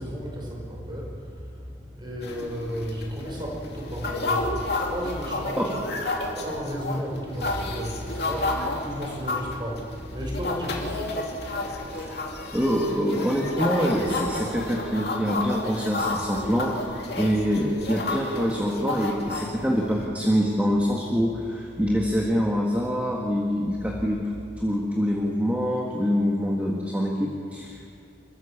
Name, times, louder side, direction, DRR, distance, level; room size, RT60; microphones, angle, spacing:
voice 1, 0.0-12.1 21.8-22.0 24.6-24.8, equal, 25° right, -2 dB, 5.3 m, -34 dB
sound 1, 2.2-20.0, left 2 dB, 55° left, 2.9 m, -31 dB
voice 2, 12.5-16.7 17.2-24.2 24.6-27.9, equal, 10° right, -2 dB, 1.7 m, -25 dB
28.5 x 14.5 x 7.3 m, 2.3 s
head